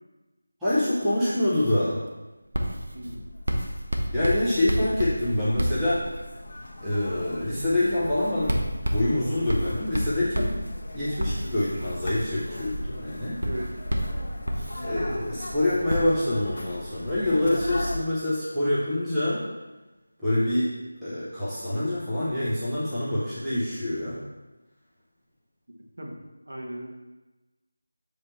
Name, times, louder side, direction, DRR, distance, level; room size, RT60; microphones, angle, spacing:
voice 1, 0.6-2.0 4.1-6.0 6.8-8.6 8.9-10.6 10.9-13.4 14.8-19.4 20.2-20.7 21.0-24.2, left 1 dB, 5° right, -14 dB, 0.6 m, -26 dB
Writing, 2.5-6.5 7.0-7.3 8.0-15.4 15.9-16.0, equal, 85° right, 1.0 m, -30 dB
sound 1, 2.9-18.0, left 1 dB, 40° left, 0.8 m, -39 dB
voice 2, 2.9-3.3 13.4-13.7 26.0-26.2 26.4-26.9, right 1 dB, 65° right, -1 dB, 1.4 m, -36 dB
7.2 x 3.3 x 4.3 m, 1.1 s
figure-of-eight pair, 180°, 0 cm